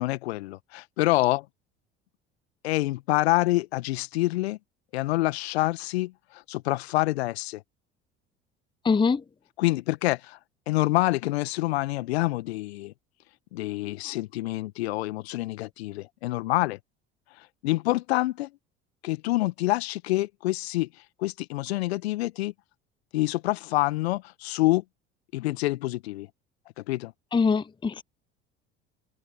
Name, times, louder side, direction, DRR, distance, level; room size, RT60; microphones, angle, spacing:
voice 1, 0.0-1.4 2.6-4.6 4.9-7.6 9.6-10.4 10.7-12.9 13.5-16.8 17.6-18.5 19.0-20.9 21.2-22.5 23.1-24.8 25.3-26.3 26.8-27.1, left 18 dB, 70° left, 1.6 m, -27 dB
voice 2, 8.8-9.2 27.3-28.0, left 5 dB, 15° left, 0.8 m, -23 dB
figure-of-eight pair, 60°, 33 cm